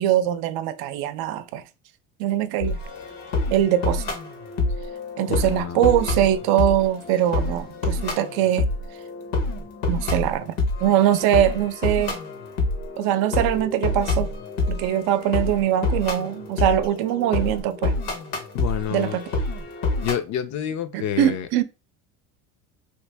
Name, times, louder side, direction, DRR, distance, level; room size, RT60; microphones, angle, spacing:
voice 1, 0.0-1.6 2.2-2.8 3.5-4.0 5.2-8.7 9.9-10.5 10.8-12.1 13.0-14.3 14.7-18.0 18.9-19.3 20.9-21.6, right 11 dB, 65° right, 0.6 m, -22 dB
sound 1, 2.6-20.1, left 2 dB, 75° left, 1.3 m, -27 dB
voice 2, 5.3-5.9 18.5-19.2 20.0-21.5, left 10 dB, 45° left, 0.5 m, -28 dB
3.0 x 2.6 x 3.3 m
supercardioid pair, 100°, 41 cm